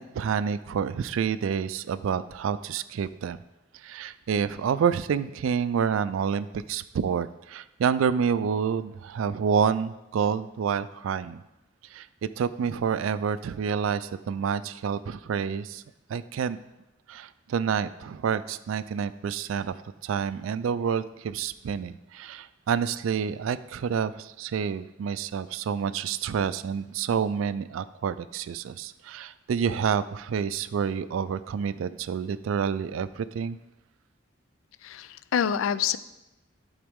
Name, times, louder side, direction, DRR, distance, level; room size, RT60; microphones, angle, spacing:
voice 1, 0.0-3.4 3.7-11.4 11.9-12.1 12.4-15.8 16.1-16.6 17.1-19.8 20.0-33.6, right 7 dB, 85° right, 15 dB, 0.3 m, -28 dB
voice 2, 34.8-36.0, left 8 dB, 85° left, 15 dB, 0.3 m, -26 dB
11.5 x 4.0 x 3.5 m, 0.96 s
head